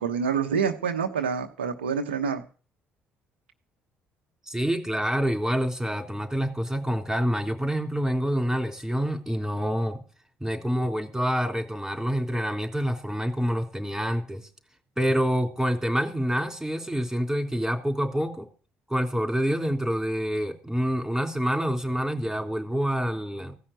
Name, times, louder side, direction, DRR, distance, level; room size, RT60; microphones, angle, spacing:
voice 1, 0.0-2.4, right 6 dB, 90° right, 5 dB, 0.9 m, -27 dB
voice 2, 4.5-10.0 10.4-14.4 15.0-18.5 18.9-23.6, equal, 5° right, 4 dB, 3.5 m, -27 dB
15.5 x 5.6 x 9.1 m, 0.39 s
hypercardioid pair, 50°, 6 cm